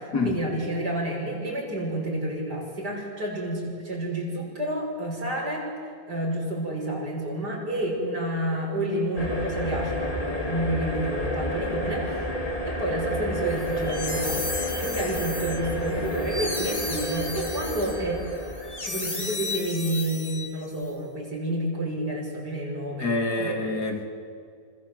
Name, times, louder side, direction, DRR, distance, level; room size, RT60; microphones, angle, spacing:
voice 1, 0.0-12.3 12.7-14.5 14.8-18.5 18.8-23.1 23.4-23.6, right 1 dB, 80° right, -1 dB, 7.2 m, -30 dB
sound 1, 9.2-19.5, left 1 dB, 20° left, 2.8 m, -31 dB
sound 2, 13.6-20.8, left 3 dB, 45° left, 3.0 m, -34 dB
voice 2, 23.0-24.0, left 3 dB, 75° left, 2 dB, 3.8 m, -26 dB
27.5 x 26.5 x 8.0 m, 2.2 s
omnidirectional pair, 1.7 m